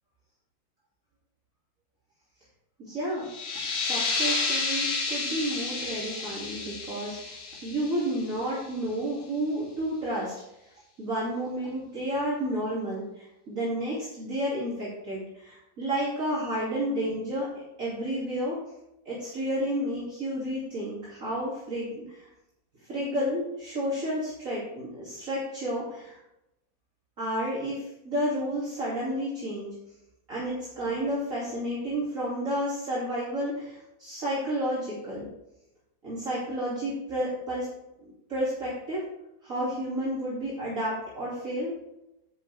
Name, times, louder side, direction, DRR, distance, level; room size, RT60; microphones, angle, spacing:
voice 1, 2.8-3.3 3.7-10.3 11.0-18.6 19.0-22.2 22.9-26.2 27.2-29.7 30.3-35.3 36.0-37.7 38.3-39.0 39.4-41.7, equal, 40° right, -8 dB, 3.0 m, -31 dB
sound 1, 3.2-8.6, left 4 dB, 85° left, 2.3 m, -31 dB
10.5 x 8.8 x 3.4 m, 0.86 s
omnidirectional pair, 2.2 m